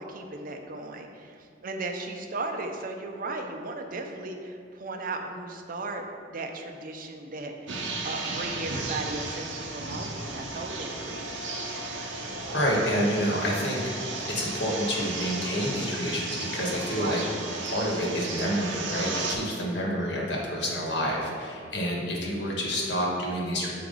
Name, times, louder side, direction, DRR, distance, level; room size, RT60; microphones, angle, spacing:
voice 1, 0.0-7.8 8.0-11.3 16.9-17.3, right 2 dB, 50° right, 4 dB, 0.6 m, -36 dB
sound 1, 7.7-19.3, right 3 dB, 90° right, 0.9 m, -34 dB
voice 2, 12.5-17.2 17.6-23.7, equal, 70° left, -3 dB, 1.4 m, -28 dB
6.9 x 4.7 x 3.9 m, 2.3 s
head